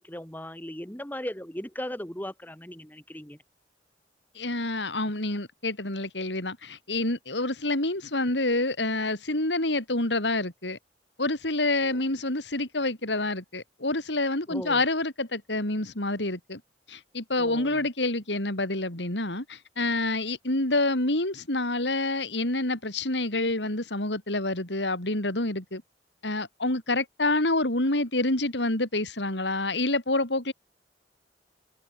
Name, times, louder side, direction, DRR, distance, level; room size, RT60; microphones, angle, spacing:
voice 1, 0.0-3.4 11.8-12.0 14.5-14.8 17.4-17.8, left 1 dB, 10° left, 2.8 m, -38 dB
voice 2, 4.3-10.8 11.2-16.6 16.9-25.8 26.2-30.5, left 2 dB, 80° left, 5.1 m, -27 dB
head